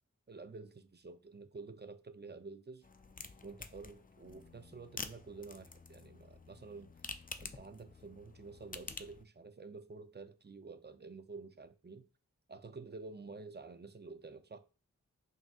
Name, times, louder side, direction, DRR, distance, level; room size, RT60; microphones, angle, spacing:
voice 1, 0.3-2.9 3.4-6.9 7.4-12.1 12.5-14.6, right 4 dB, 30° right, 0.5 m, -50 dB
sound 1, 2.8-9.2, left 4 dB, 25° left, 0.4 m, -49 dB
5.8 x 2.8 x 2.3 m
wide cardioid pair, 55°, 33 cm